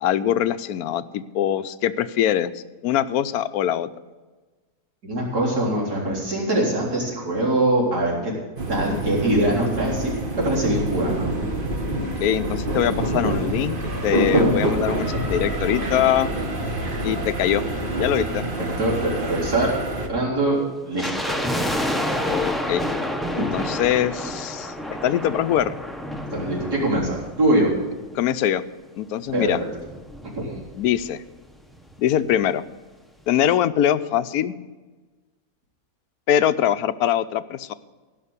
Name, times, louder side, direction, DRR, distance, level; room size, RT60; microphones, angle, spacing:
voice 1, 0.0-3.9 12.2-16.3 17.0-17.6 18.0-18.5 22.2-22.8 23.4-25.7 28.1-28.6 29.0-29.6 30.8-31.2 32.0-32.6 33.3-34.5 36.3-37.7, left 10 dB, 75° left, 13 dB, 1.1 m, -23 dB
voice 2, 5.0-8.3 8.7-11.3 18.6-19.7 20.1-20.6 20.8-21.5 26.3-27.7 29.3-29.7 30.3-30.6, right 1 dB, 80° right, -5 dB, 4.4 m, -23 dB
sound 1, 8.6-20.1, right 1 dB, 35° right, 1.6 m, -26 dB
sound 2, 21.0-28.3 28.5-28.6 29.3-31.1 31.4-31.5 31.7-32.0 32.4-32.5, equal, ahead, 0.6 m, -29 dB
17.0 x 5.9 x 8.2 m, 1.3 s
omnidirectional pair, 1.7 m